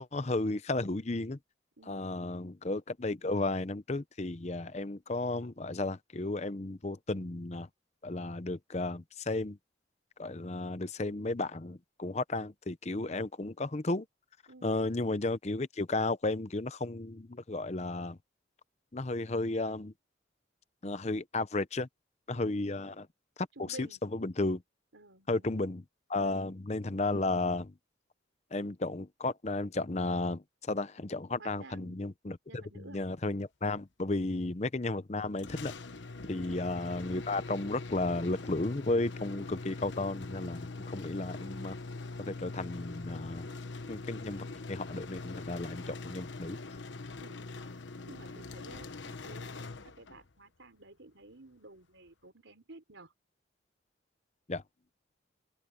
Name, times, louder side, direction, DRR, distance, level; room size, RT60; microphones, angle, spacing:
voice 1, 0.0-1.4 1.9-7.7 8.0-9.6 10.2-14.1 14.6-18.2 18.9-19.9 20.8-21.9 22.3-23.1 23.4-24.6 25.3-25.8 26.1-27.7 28.5-35.7 36.3-41.8 42.2-43.5 43.9-46.6 54.5-54.6, left 2 dB, 35° left, 0.7 m, -33 dB
voice 2, 1.8-2.1 14.5-14.7 22.3-22.5 23.6-24.0 24.9-25.7 26.2-26.4 31.4-32.0 32.5-33.0 34.3-34.4 36.3-36.5 47.2-47.4 48.1-53.1, right 2 dB, 90° right, 4.3 m, -53 dB
sound 1, 35.4-50.3, left 3 dB, 75° left, 1.0 m, -43 dB
open air
head